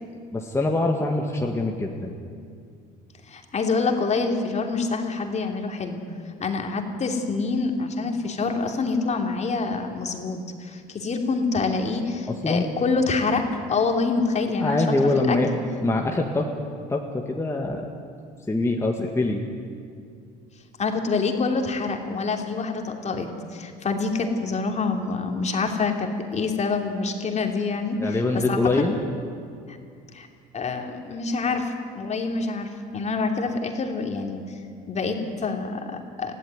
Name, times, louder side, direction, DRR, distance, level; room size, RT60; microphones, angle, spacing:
voice 1, 0.3-2.1 12.4-12.7 14.6-15.5 15.8-16.5 16.9-17.9 18.5-19.5 28.0-29.0, left 2 dB, 15° left, 0 dB, 2.0 m, -24 dB
voice 2, 3.3-6.0 6.4-15.4 20.8-28.9 29.7-29.8 30.1-30.3 30.5-34.4 34.9-36.3, left 4 dB, 35° left, 3 dB, 3.0 m, -26 dB
21.5 x 15.0 x 9.6 m, 2.3 s
supercardioid pair, 90°, 20 cm